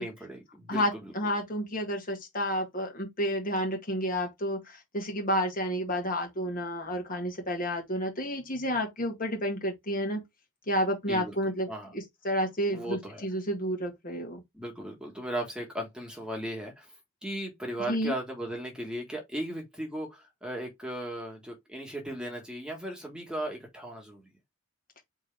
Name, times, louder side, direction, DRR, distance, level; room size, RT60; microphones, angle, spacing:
voice 1, 0.0-1.1 11.1-11.4 11.7-11.9 12.7-13.2 14.5-16.9 17.2-24.3, right 1 dB, 5° right, 1.5 m, -37 dB
voice 2, 0.7-10.2 10.7-11.7 11.9-14.4 17.8-18.1, equal, 40° left, 1.7 m, -30 dB
4.4 x 3.6 x 3.3 m
head